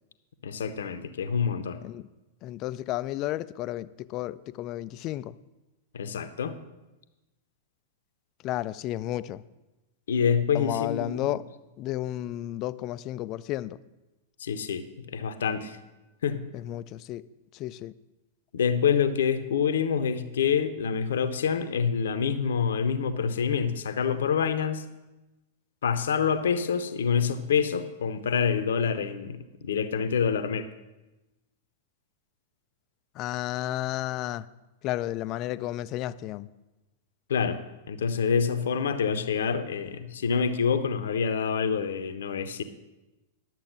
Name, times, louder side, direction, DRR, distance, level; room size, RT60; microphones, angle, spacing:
voice 1, 0.4-1.8 5.9-6.6 10.1-11.4 14.4-15.8 16.2-16.4 18.5-24.9 25.8-29.4 29.6-30.7 37.3-37.6 37.9-42.6, left 6 dB, 65° left, 11 dB, 0.8 m, -26 dB
voice 2, 2.4-5.3 8.4-9.4 10.5-11.5 11.8-13.8 16.5-17.3 17.5-17.9 33.1-34.5 34.8-36.5, left 14 dB, 35° left, 17 dB, 0.4 m, -32 dB
10.5 x 7.6 x 6.1 m, 1.1 s
figure-of-eight pair, 95°, 0 cm